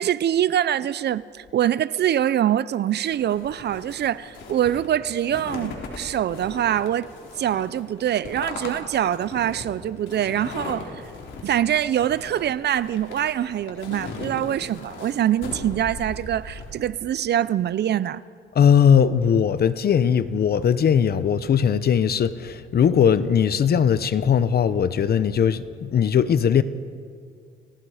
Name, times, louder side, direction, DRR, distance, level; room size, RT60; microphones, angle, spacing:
voice 1, 0.0-7.1 7.4-10.9 11.4-18.2, right 11 dB, 55° right, 0.6 m, -24 dB
sound 1, 3.1-16.7, left 3 dB, 70° left, 4.7 m, -38 dB
voice 2, 18.6-26.6, left 8 dB, 50° left, 0.9 m, -19 dB
30.0 x 18.0 x 5.0 m
cardioid pair, 90°, 20 cm